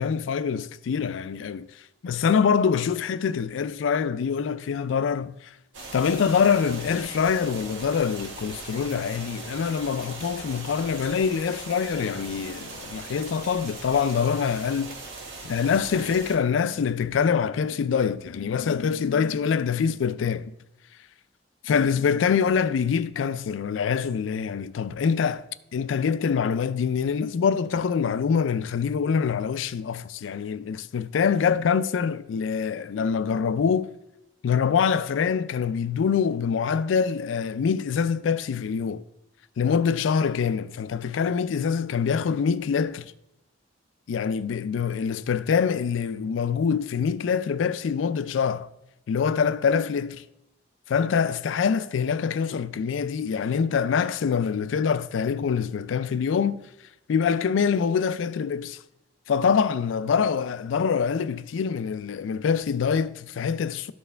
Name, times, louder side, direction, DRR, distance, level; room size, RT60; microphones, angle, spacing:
voice 1, 0.0-1.7 2.0-5.5 5.9-15.0 15.4-20.5 21.6-25.5 25.7-33.9 34.4-39.0 39.6-43.1 44.1-48.7 49.1-50.2 50.9-56.6 57.1-58.8 59.3-63.9, left 6 dB, 90° left, 0.4 m, -25 dB
sound 1, 5.7-16.3, right 3 dB, 85° right, 1.5 m, -40 dB
13.0 x 4.5 x 3.3 m
head